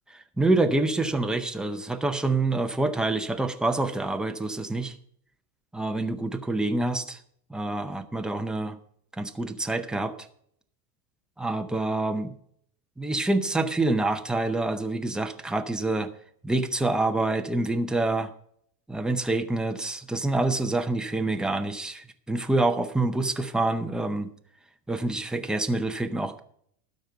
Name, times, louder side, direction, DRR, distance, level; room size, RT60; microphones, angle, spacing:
voice 1, 0.1-4.9 5.7-7.2 7.5-8.8 9.1-10.1 11.4-12.3 13.0-16.1 16.4-18.3 18.9-24.3 24.9-26.4, right 2 dB, ahead, 6 dB, 0.6 m, -27 dB
12.5 x 5.4 x 7.9 m, 0.66 s
supercardioid pair, 135°, 46 cm